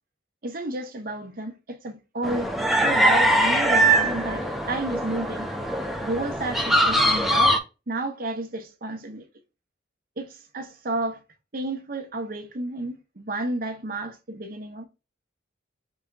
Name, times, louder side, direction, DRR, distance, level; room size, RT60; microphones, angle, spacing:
voice 1, 0.4-2.5 2.8-5.5 6.0-7.6 7.9-9.3 10.2-11.2 11.5-14.9, right 2 dB, 50° right, 0.9 m, -31 dB
sound 1, 2.2-7.6, right 1 dB, ahead, 0.6 m, -22 dB
5.1 x 3.5 x 2.4 m
head